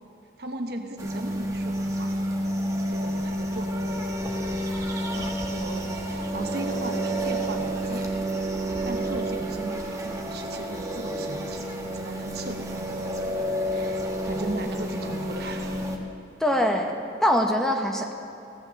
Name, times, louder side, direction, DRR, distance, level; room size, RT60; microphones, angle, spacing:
voice 1, 0.4-2.1 2.9-4.1 4.3-8.1 8.8-13.0 13.6-15.9, right 2 dB, 65° right, 4 dB, 1.0 m, -37 dB
sound 1, 1.0-16.0, right 1 dB, 20° right, 1.1 m, -30 dB
voice 2, 16.4-18.1, equal, 5° left, 2 dB, 0.8 m, -23 dB
16.0 x 6.1 x 7.5 m, 2.7 s
head